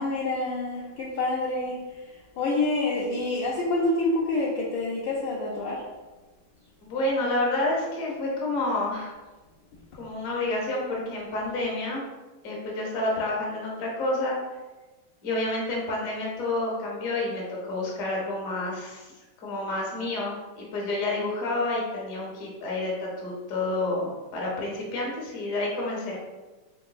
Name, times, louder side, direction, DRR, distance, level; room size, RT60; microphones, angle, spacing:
voice 1, 0.0-1.8 2.4-5.8, left 2 dB, 75° left, -4 dB, 1.1 m, -27 dB
voice 2, 6.8-9.1 9.9-12.0 12.4-14.4 15.2-19.1 19.4-26.2, left 2 dB, 55° left, -3 dB, 1.0 m, -29 dB
3.8 x 3.4 x 2.3 m, 1.2 s
omnidirectional pair, 2.4 m